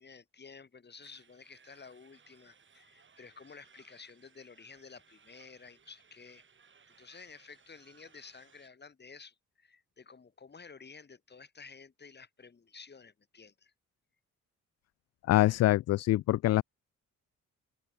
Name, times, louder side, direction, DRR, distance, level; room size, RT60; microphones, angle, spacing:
voice 1, 0.0-6.4 7.0-13.7, left 5 dB, 35° left, 6.4 m, -52 dB
sound 1, 1.0-8.7, right 6 dB, 40° right, 6.0 m, -63 dB
voice 2, 15.3-16.6, left 15 dB, 60° left, 0.4 m, -25 dB
open air
cardioid pair, 90°, 30 cm